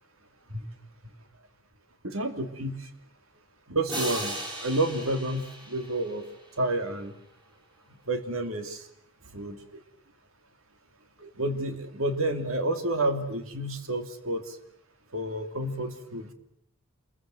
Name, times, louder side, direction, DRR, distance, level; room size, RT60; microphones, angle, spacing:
voice 1, 2.0-2.8 3.7-6.2 6.6-7.1 8.1-8.8 9.3-9.6 11.2-14.4 15.1-16.3, right 1 dB, 75° right, 8 dB, 2.9 m, -30 dB
sound 1, 3.9-6.6, right 1 dB, 20° right, 6.7 m, -37 dB
28.0 x 22.5 x 7.7 m, 0.71 s
head